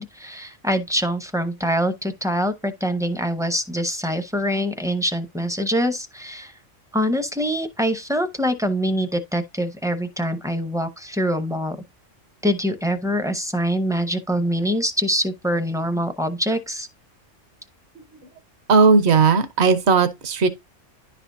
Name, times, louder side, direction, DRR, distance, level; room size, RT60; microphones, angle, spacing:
voice 1, 0.0-6.5 6.9-11.8 12.4-16.9, equal, 5° right, 0.5 m, -24 dB
voice 2, 18.7-20.5, right 4 dB, 60° right, 1.2 m, -16 dB
10.5 x 5.0 x 2.6 m
omnidirectional pair, 1.3 m